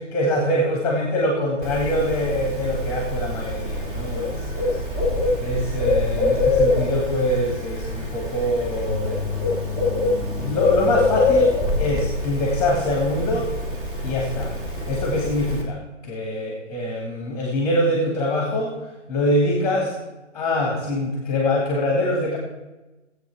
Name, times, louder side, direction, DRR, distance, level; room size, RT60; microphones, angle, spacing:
voice 1, 0.1-4.8 5.4-9.7 10.4-11.5 11.8-13.5 14.0-14.5 14.9-18.7 19.1-19.9 20.3-22.4, left 1 dB, 5° left, -1 dB, 2.1 m, -24 dB
Bird, 1.6-15.6, left 2 dB, 20° right, 2.0 m, -24 dB
17.0 x 8.1 x 3.5 m, 1.1 s
hypercardioid pair, 150°, 37 cm